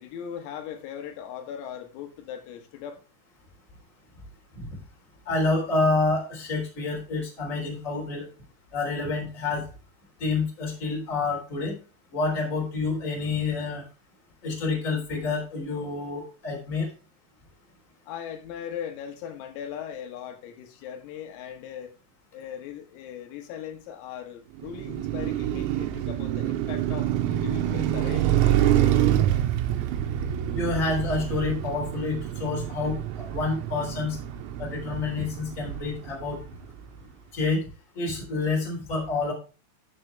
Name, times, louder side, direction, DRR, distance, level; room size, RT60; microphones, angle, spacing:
voice 1, 0.0-3.0 18.1-22.0 22.3-29.2, left 9 dB, 85° left, 4.0 m, -39 dB
voice 2, 5.2-8.3 8.7-9.6 10.2-11.8 12.1-13.8 14.4-16.9 30.5-34.2 34.6-36.4 37.3-37.6 37.9-39.3, left 3 dB, 20° left, 3.1 m, -28 dB
Car passing by, 24.6-36.8, right 11 dB, 90° right, 3.7 m, -27 dB
11.0 x 7.7 x 3.3 m
omnidirectional pair, 6.0 m